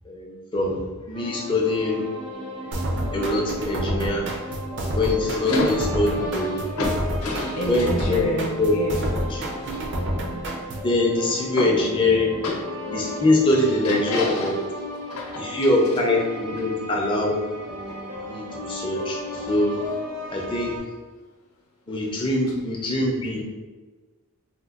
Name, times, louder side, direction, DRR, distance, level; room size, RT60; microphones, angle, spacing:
voice 1, 0.1-2.1 3.1-4.3 4.9-6.6 7.7-8.7 9.1-9.7 10.8-12.3 12.9-14.5 15.4-17.4 18.2-19.8 20.3-20.7 21.9-23.4, left 2 dB, 20° left, -1 dB, 0.4 m, -23 dB
sound 1, 1.1-20.8, left 1 dB, 85° right, 1.0 m, -35 dB
sound 2, 2.7-10.9, right 1 dB, 50° right, 0.4 m, -29 dB
voice 2, 5.5-6.2 6.8-10.0 11.6-11.8 12.4-12.6 13.1-13.2 13.5-14.6 15.1-15.5 17.9-18.3, left 1 dB, 80° left, -1 dB, 0.7 m, -29 dB
4.2 x 2.2 x 2.4 m, 1.3 s
head